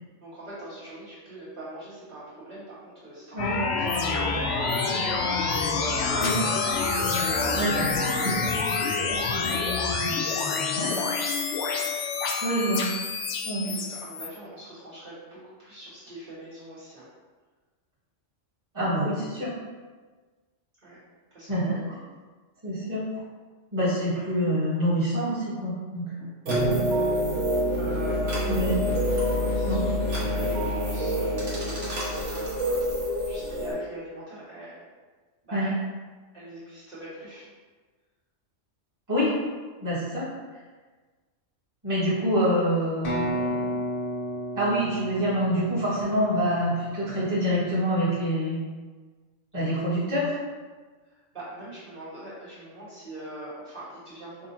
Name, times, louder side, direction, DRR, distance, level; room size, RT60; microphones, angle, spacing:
voice 1, 0.2-3.6 3.9-5.0 5.3-6.5 6.8-9.8 10.1-11.3 13.6-17.0 20.8-21.0 21.3-21.8 27.7-28.7 29.4-32.8 33.3-34.7 35.4-35.7 36.3-37.5 51.1-54.5, right 1 dB, 40° right, -13 dB, 1.8 m, -42 dB
sound 1, 3.4-14.3, left 4 dB, 80° left, 0.9 m, -27 dB
voice 2, 12.4-12.9 13.4-13.7 18.7-19.5 21.5-21.7 22.6-23.1 23.7-26.1 26.6-26.8 28.5-28.8 29.7-29.8 35.5-35.7 39.1-39.3 39.8-40.3 41.8-43.7 44.5-48.6 49.5-50.4, equal, 15° right, -13 dB, 1.5 m, -26 dB
sound 2, 26.5-33.7, equal, 70° right, 1.4 m, -26 dB
sound 3, 43.0-46.8, equal, 50° left, 1.0 m, -32 dB
5.2 x 2.7 x 2.8 m, 1.4 s
omnidirectional pair, 1.3 m